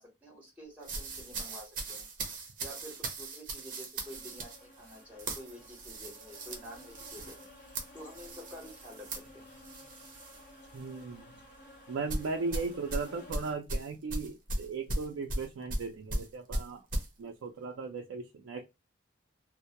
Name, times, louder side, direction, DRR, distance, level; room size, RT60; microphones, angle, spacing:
voice 1, 0.0-2.1 2.6-7.5 7.9-9.1 9.3-9.4 12.5-12.7, equal, 10° right, -1 dB, 0.9 m, -49 dB
sound 1, 0.8-10.4 10.8-11.0 12.1-17.1, right 1 dB, 45° right, 0.6 m, -38 dB
sound 2, 4.0-13.6, left 1 dB, 40° left, 0.8 m, -54 dB
voice 2, 10.7-11.3 11.9-16.8 17.2-18.6, right 4 dB, 90° right, 2 dB, 0.4 m, -37 dB
2.2 x 2.1 x 2.8 m, 0.22 s
head